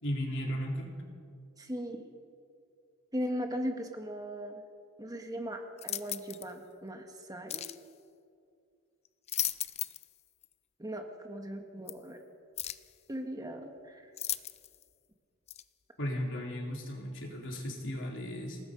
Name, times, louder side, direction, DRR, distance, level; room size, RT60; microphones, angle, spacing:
voice 1, 0.0-1.0 16.0-18.6, equal, 60° left, 0 dB, 3.8 m, -35 dB
voice 2, 1.6-2.0 3.1-4.6 5.0-7.6 10.8-12.2 13.1-14.0, equal, 15° right, 4 dB, 1.5 m, -38 dB
sound 1, 5.8-6.5 7.5-7.8 9.1-10.1 10.4-10.5 11.9-12.0 12.6-12.9 14.2-14.8 15.5-15.6, left 12 dB, 30° left, 0.5 m, -36 dB
28.0 x 19.0 x 5.3 m, 2.4 s
head